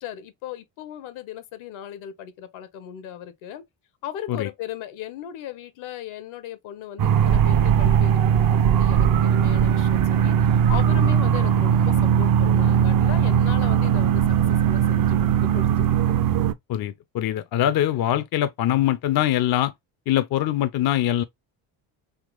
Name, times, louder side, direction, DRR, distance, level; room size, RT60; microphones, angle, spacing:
voice 1, 0.0-3.6 4.0-14.2 14.7-16.1, left 10 dB, 70° left, 0.9 m, -37 dB
sound 1, 7.0-16.5, right 8 dB, 45° right, 0.5 m, -19 dB
voice 2, 16.7-19.7 20.1-21.2, left 12 dB, 50° left, 0.5 m, -23 dB
3.6 x 2.9 x 2.3 m
supercardioid pair, 70°, 50 cm